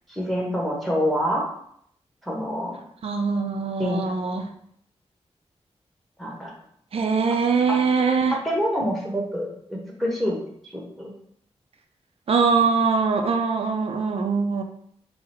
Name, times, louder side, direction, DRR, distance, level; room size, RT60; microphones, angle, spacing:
voice 1, 0.1-1.5 2.2-2.8 3.8-4.0 6.2-6.5 8.4-11.1, equal, ahead, -2 dB, 1.2 m, -26 dB
voice 2, 3.0-4.5 6.9-8.4 12.3-14.6, right 5 dB, 60° right, 5 dB, 0.4 m, -22 dB
3.8 x 2.0 x 4.3 m, 0.68 s
wide cardioid pair, 85°, 11 cm